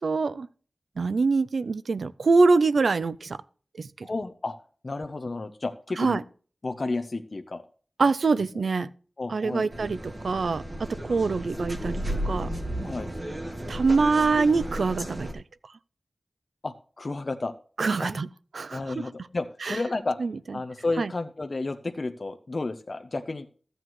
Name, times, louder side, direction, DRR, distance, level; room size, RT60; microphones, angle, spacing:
voice 1, 0.0-0.5 1.0-3.4 3.8-4.1 6.0-6.2 8.0-8.9 9.3-10.0 10.2-12.5 13.7-15.4 17.8-18.3 18.5-19.0 19.6-19.8 20.2-20.3 21.0-21.1, right 4 dB, 85° right, 0.4 m, -24 dB
voice 2, 4.0-4.5 4.8-6.2 6.6-7.6 8.5-8.6 9.2-9.7 12.8-13.1 16.6-17.5 18.0-18.1 18.7-20.2 20.5-23.5, left 3 dB, 50° left, 0.6 m, -31 dB
sound 1, 9.7-15.3, right 1 dB, 35° right, 1.3 m, -33 dB
14.0 x 7.8 x 3.1 m
wide cardioid pair, 80°, 0 cm